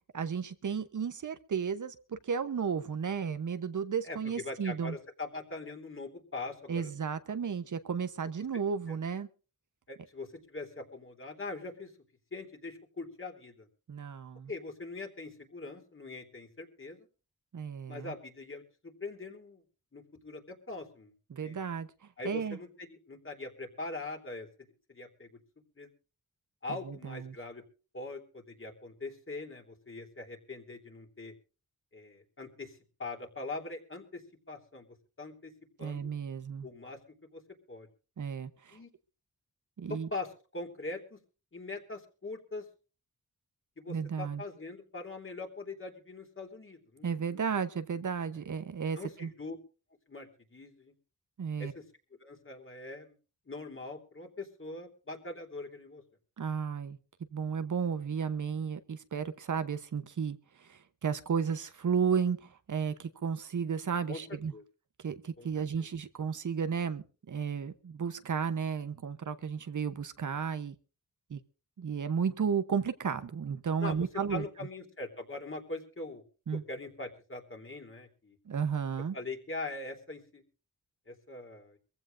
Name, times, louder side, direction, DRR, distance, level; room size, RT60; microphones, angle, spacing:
voice 1, 0.1-5.0 6.7-9.3 13.9-14.5 17.5-18.1 21.3-21.9 22.2-22.6 26.8-27.3 35.8-36.7 38.2-38.8 39.8-40.1 43.9-44.4 47.0-49.3 51.4-51.7 56.4-57.0 57.3-64.5 65.0-70.7 71.3-71.4 71.8-74.4 76.5-76.6 78.5-79.2, right 6 dB, 65° right, 1.0 m, -33 dB
voice 2, 4.0-6.9 8.9-9.0 9.9-11.9 12.3-13.7 14.5-17.1 17.9-19.6 19.9-21.1 21.4-21.6 22.2-24.5 24.9-25.3 25.8-25.9 26.6-27.6 27.9-31.3 31.9-34.2 34.5-34.9 35.2-35.5 35.8-36.1 36.6-37.0 37.3-37.4 37.7-37.9 38.7-38.9 39.9-41.2 41.5-42.6 43.8-47.4 48.9-49.6 50.1-50.9 51.6-51.8 52.2-53.1 53.5-56.0 64.1-64.2 64.5-64.6 65.4-65.5 65.8-65.9 73.8-74.0 74.3-76.2 76.7-78.4 79.1-80.4 81.1-81.8, left 3 dB, 40° left, 3.3 m, -42 dB
23.5 x 15.5 x 2.6 m
cardioid pair, 60°, 33 cm